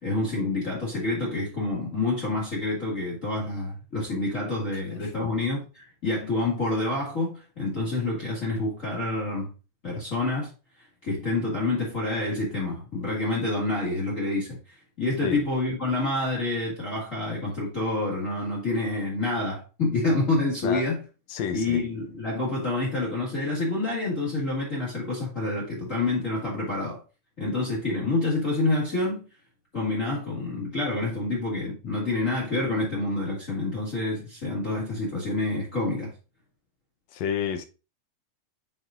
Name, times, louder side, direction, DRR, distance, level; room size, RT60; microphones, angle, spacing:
voice 1, 0.0-9.5 9.8-10.5 11.0-21.0 21.5-27.0 27.4-29.2 29.7-36.1, left 2 dB, 30° left, 2.1 m, -28 dB
voice 2, 4.9-5.3 15.2-15.4 20.6-20.9 21.3-21.8 37.1-37.7, left 8 dB, 70° left, 2.0 m, -30 dB
9.1 x 5.4 x 2.5 m
omnidirectional pair, 3.3 m